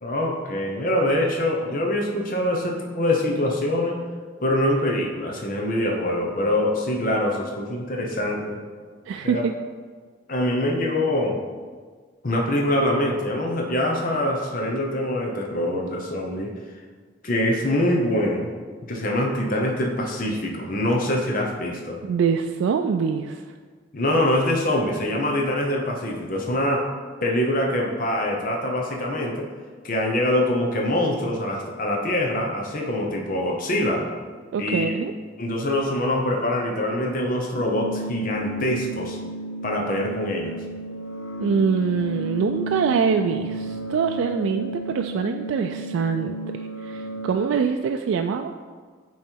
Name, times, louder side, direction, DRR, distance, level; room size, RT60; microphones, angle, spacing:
voice 1, 0.0-4.0 4.4-8.6 9.2-9.5 10.3-11.4 12.2-16.5 17.2-18.5 18.9-22.0 23.9-26.8 27.2-29.5 29.8-34.1 34.6-34.9 35.4-39.2 39.6-40.6, left 1 dB, 45° left, 0 dB, 0.8 m, -24 dB
voice 2, 9.1-9.5 22.0-23.4 34.5-35.1 41.4-46.4 46.8-48.5, right 6 dB, 85° right, 5 dB, 0.3 m, -24 dB
sound 1, 37.6-47.6, right 1 dB, 90° left, 0.6 m, -33 dB
8.8 x 3.1 x 4.5 m, 1.5 s
head